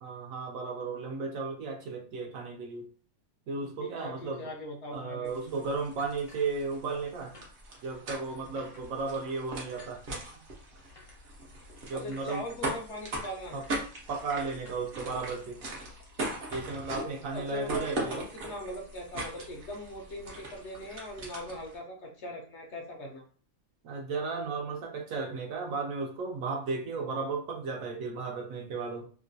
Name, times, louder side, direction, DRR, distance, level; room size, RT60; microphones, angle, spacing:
voice 1, 0.0-2.9 3.5-4.5 4.9-7.3 7.8-10.0 10.3-10.4 11.9-12.4 13.5-13.6 14.1-15.6 16.5-18.3 23.8-29.1, right 4 dB, 70° right, 1 dB, 1.0 m, -34 dB
voice 2, 3.8-5.3 11.9-13.6 16.9-23.2, left 1 dB, 60° left, 0 dB, 0.8 m, -40 dB
sound 1, 5.3-21.8, right 2 dB, 50° right, 0.8 m, -40 dB
sound 2, 6.0-7.1 7.3-7.5 7.9-8.0 8.5-8.8 9.7-10.0 10.9-11.1 12.1-12.4 13.2-13.3 13.6-13.8 14.6-14.9 15.2-15.3 15.6-15.8 16.3-17.1, left 2 dB, 30° left, 0.6 m, -51 dB
2.9 x 2.2 x 2.6 m, 0.42 s
omnidirectional pair, 1.5 m